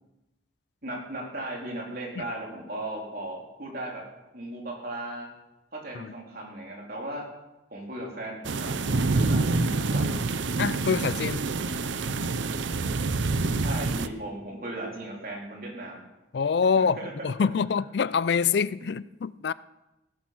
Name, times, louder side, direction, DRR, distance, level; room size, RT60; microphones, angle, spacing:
voice 1, 0.8-4.0 4.3-5.3 5.7-7.2 7.7-10.1 13.6-16.0 16.8-17.3, right 1 dB, 50° right, 3.9 m, -37 dB
sound 1, 8.4-14.1, right 3 dB, 80° right, 0.7 m, -27 dB
voice 2, 10.6-11.4 16.3-19.5, left 6 dB, 60° left, 0.4 m, -26 dB
16.5 x 10.5 x 6.1 m
head